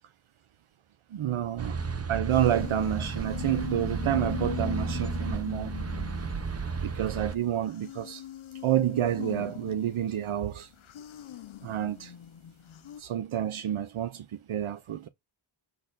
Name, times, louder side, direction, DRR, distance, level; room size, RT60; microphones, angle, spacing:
voice 1, 1.1-1.8 2.1-5.7 6.8-8.2 8.6-10.7 11.6-12.1 13.0-15.1, right 11 dB, 75° right, 0.6 m, -29 dB
sound 1, 1.6-7.4, right 5 dB, 30° right, 0.6 m, -33 dB
sound 2, 2.3-7.4 7.7-13.0, left 12 dB, 70° left, 0.6 m, -41 dB
6.6 x 4.2 x 3.8 m
wide cardioid pair, 110°, 49 cm